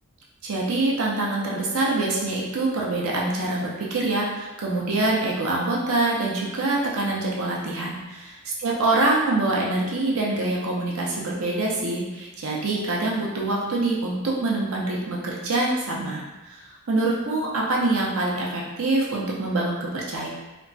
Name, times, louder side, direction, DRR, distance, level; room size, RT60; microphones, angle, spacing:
voice 1, 0.4-20.3, right 2 dB, 70° right, -3 dB, 0.6 m, -25 dB
2.9 x 2.2 x 2.6 m, 1.1 s
head